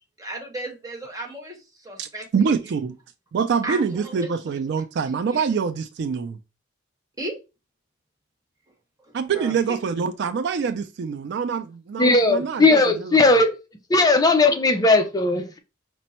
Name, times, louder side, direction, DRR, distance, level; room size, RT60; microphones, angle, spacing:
voice 1, 0.2-2.8 3.6-4.3 5.1-5.2 7.2-7.4 9.3-9.8, right 2 dB, 20° right, 1.1 m, -34 dB
voice 2, 2.0-2.9 3.3-6.4 9.1-13.2, right 6 dB, 60° right, 0.3 m, -25 dB
voice 3, 12.0-13.5 13.9-15.6, left 3 dB, 20° left, 0.4 m, -18 dB
5.2 x 2.1 x 4.2 m
head